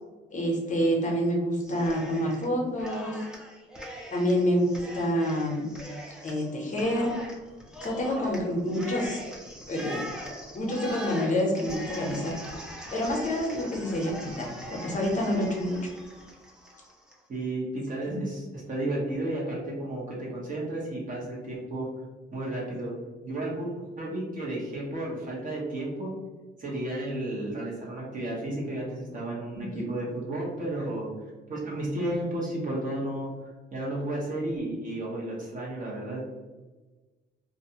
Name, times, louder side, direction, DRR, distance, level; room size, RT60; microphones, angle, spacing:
voice 1, 0.3-3.2 4.1-5.7 6.2-7.1 7.8-9.2 9.7-10.0 10.5-12.3 12.9-15.8 18.1-18.2 29.7-29.8, equal, 40° left, -1 dB, 0.7 m, -27 dB
Cheering, 1.6-2.5 2.8-17.2, equal, 5° right, 0.5 m, -42 dB
voice 2, 17.3-21.9 22.3-22.9 23.2-26.1 26.6-31.1 31.5-33.3 33.7-36.2, right 1 dB, 40° right, -4 dB, 1.0 m, -32 dB
2.5 x 2.2 x 2.7 m, 1.2 s
cardioid pair, 90°, 20 cm